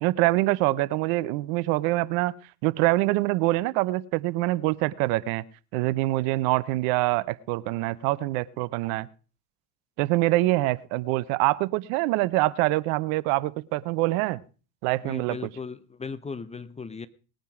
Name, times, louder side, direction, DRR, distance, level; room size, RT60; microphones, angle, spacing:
voice 1, 0.0-2.3 2.6-5.4 5.7-9.1 10.0-14.4 14.8-15.4, right 19 dB, 65° right, 19 dB, 0.9 m, -25 dB
voice 2, 15.0-17.1, left 5 dB, 15° left, 15 dB, 0.9 m, -37 dB
19.5 x 9.2 x 5.0 m, 0.37 s
supercardioid pair, 100°, 47 cm